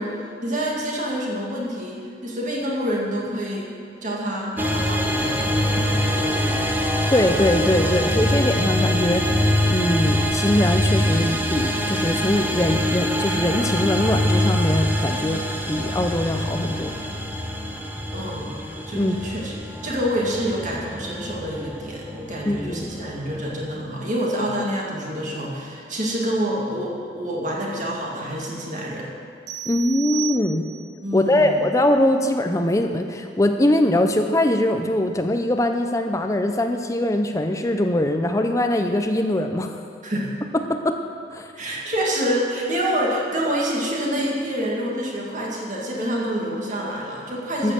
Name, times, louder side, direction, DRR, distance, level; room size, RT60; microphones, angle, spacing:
voice 1, 0.0-3.7 4.0-6.6 18.1-29.1 31.0-31.6 40.0-40.3 41.6-47.7, equal, 45° right, -3 dB, 2.1 m, -27 dB
sound 1, 4.6-23.7, equal, 10° right, 0.8 m, -24 dB
voice 2, 7.1-15.4 15.7-16.9 18.9-19.2 22.5-22.9 29.7-30.7 31.1-39.8 40.5-41.0 41.3-41.5 47.6-47.7, left 1 dB, 20° left, 6 dB, 0.5 m, -22 dB
sound 2, 29.5-31.0, right 14 dB, 70° right, 1.5 m, -33 dB
13.5 x 6.6 x 7.2 m, 2.2 s
head